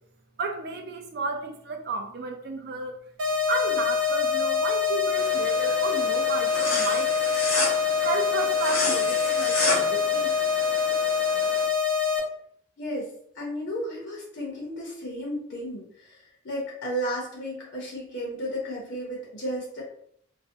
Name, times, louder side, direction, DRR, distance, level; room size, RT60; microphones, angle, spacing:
voice 1, 0.4-3.0 3.5-7.1 8.0-10.5, right 3 dB, 50° right, 5 dB, 0.3 m, -32 dB
sound 1, 3.2-12.2, left 7 dB, 85° right, 0.7 m, -25 dB
sound 2, 5.2-11.6, left 1 dB, 90° left, 1.0 m, -31 dB
voice 2, 12.8-19.8, equal, 55° left, -3 dB, 0.6 m, -33 dB
2.4 x 2.0 x 2.6 m, 0.67 s
head